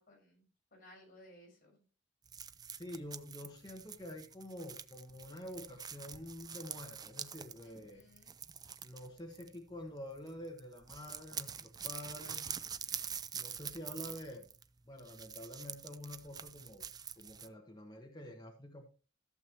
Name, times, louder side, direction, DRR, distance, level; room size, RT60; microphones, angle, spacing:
voice 1, 0.0-1.8 7.6-8.3, left 1 dB, 45° left, -1 dB, 6.1 m, -60 dB
sound 1, 2.3-9.9 10.2-10.3 10.6-17.5, right 7 dB, 20° right, 0.4 m, -45 dB
voice 2, 2.6-8.0 8.8-12.5 13.3-14.5 14.8-16.8 17.2-18.9, left 1 dB, 20° left, 1 dB, 1.3 m, -48 dB
sound 2, 6.0-6.7 8.4-8.9 9.2-10.2 10.5-10.9 11.5-13.0, equal, 90° right, 2.6 m, -64 dB
14.5 x 7.0 x 3.0 m, 0.35 s
head